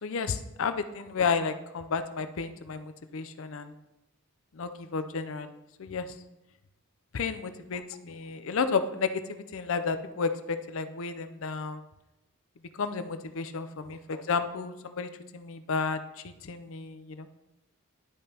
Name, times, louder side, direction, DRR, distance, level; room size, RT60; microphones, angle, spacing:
voice 1, 0.0-3.7 4.6-5.5 5.8-6.1 7.1-11.8 12.8-16.0 16.4-17.3, left 5 dB, 65° left, 10 dB, 0.5 m, -32 dB
11.0 x 5.2 x 2.8 m, 0.95 s
head